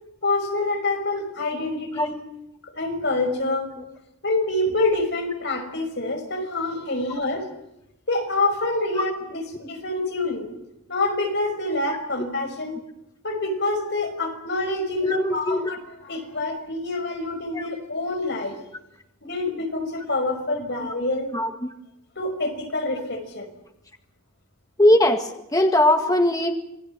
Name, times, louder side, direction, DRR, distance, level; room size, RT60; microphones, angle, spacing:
voice 1, 0.2-2.2 2.6-3.7 4.2-7.5 8.1-10.5 10.9-12.7 13.2-18.6 19.2-21.3 22.2-23.5, left 2 dB, 50° left, 6 dB, 5.6 m, -26 dB
voice 2, 15.0-15.7 17.5-17.6 20.8-20.9 21.3-21.5 24.8-26.5, left 1 dB, 15° left, 4 dB, 1.8 m, -20 dB
27.5 x 19.5 x 7.6 m, 0.86 s
head